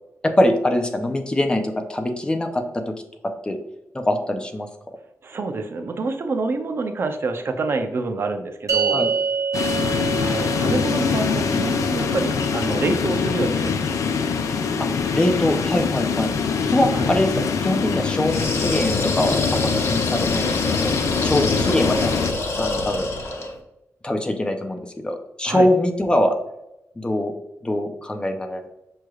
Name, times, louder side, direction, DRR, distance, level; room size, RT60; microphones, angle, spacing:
voice 1, 0.2-2.9 3.4-3.6 3.9-4.7 8.9-9.1 15.1-16.3 16.7-20.5 21.2-22.1 22.6-23.1 24.0-26.4 27.0-27.3 27.6-28.7, left 1 dB, 20° left, 5 dB, 0.5 m, -23 dB
voice 2, 5.2-9.1 10.2-13.9 16.9-17.1 25.4-25.7, right 3 dB, 50° right, 6 dB, 0.5 m, -27 dB
sound 1, 8.7-15.2, right 5 dB, 75° right, 0.9 m, -29 dB
sound 2, 9.5-22.3, left 5 dB, 90° left, 0.4 m, -23 dB
sound 3, 18.2-23.6, left 2 dB, 55° left, 0.8 m, -26 dB
6.0 x 3.2 x 2.3 m, 0.89 s
wide cardioid pair, 135°, 5 cm